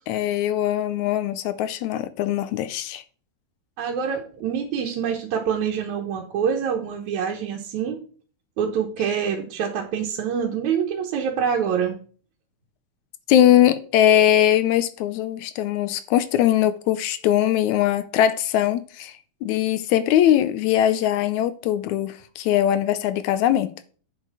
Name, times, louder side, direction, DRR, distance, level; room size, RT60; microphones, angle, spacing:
voice 1, 0.1-3.0 13.3-23.7, left 11 dB, 85° left, 2.0 m, -21 dB
voice 2, 3.8-8.0 8.6-12.0, right 7 dB, 80° right, 2.4 m, -26 dB
8.2 x 6.6 x 4.8 m
omnidirectional pair, 3.4 m